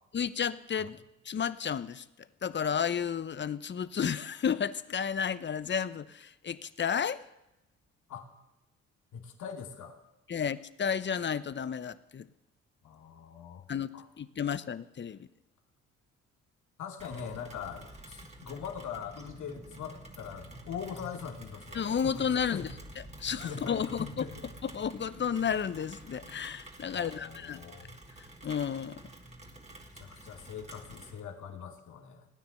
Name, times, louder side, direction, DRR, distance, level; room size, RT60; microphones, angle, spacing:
voice 1, 0.1-2.0 2.4-7.2 10.3-12.3 13.7-15.3 21.7-22.7 23.2-24.3 24.6-27.7 28.4-29.0, left 7 dB, 35° left, 16 dB, 0.8 m, -32 dB
voice 2, 9.1-9.9 12.8-13.7 13.9-14.0 16.8-22.7 23.4-24.5 26.9-27.9 30.0-32.3, left 7 dB, 65° left, 2 dB, 2.4 m, -42 dB
Rain, 17.0-31.2, right 1 dB, 20° right, 2.7 m, -49 dB
18.5 x 9.8 x 7.8 m, 0.93 s
hypercardioid pair, 55°, 32 cm